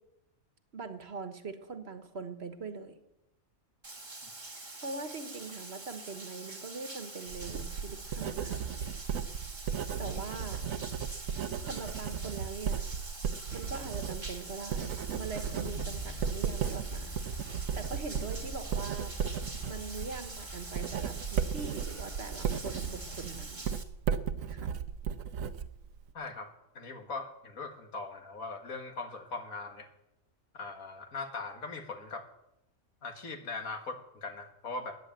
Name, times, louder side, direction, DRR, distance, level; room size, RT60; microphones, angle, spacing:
voice 1, 0.7-3.0 4.8-8.8 10.0-10.6 11.6-12.8 13.5-17.2 17.5-19.1 19.6-23.7 24.5-24.7, right 4 dB, 50° right, 8 dB, 1.4 m, -42 dB
Bathtub (filling or washing), 3.8-23.8, right 2 dB, 20° right, 1.3 m, -45 dB
Writing, 7.3-26.1, right 7 dB, 75° right, 1.2 m, -35 dB
sound 1, 15.4-23.3, right 1 dB, 25° left, 1.9 m, -46 dB
voice 2, 26.1-29.9 30.5-32.3 33.0-35.0, left 3 dB, 80° left, 5 dB, 2.1 m, -40 dB
14.5 x 9.8 x 9.0 m, 0.88 s
omnidirectional pair, 1.4 m